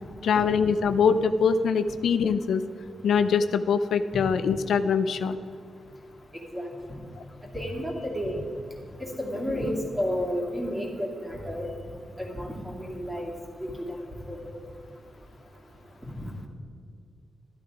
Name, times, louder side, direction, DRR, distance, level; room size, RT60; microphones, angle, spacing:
voice 1, 0.2-2.6 3.0-5.4, left 6 dB, 90° left, 11 dB, 0.5 m, -23 dB
voice 2, 6.3-7.0 7.5-8.4 9.0-11.7 12.2-13.3 13.6-14.0 14.3-14.4 16.2-16.3, equal, 5° right, -2 dB, 2.6 m, -31 dB
12.5 x 11.5 x 5.0 m, 2.3 s
wide cardioid pair, 125°, 0 cm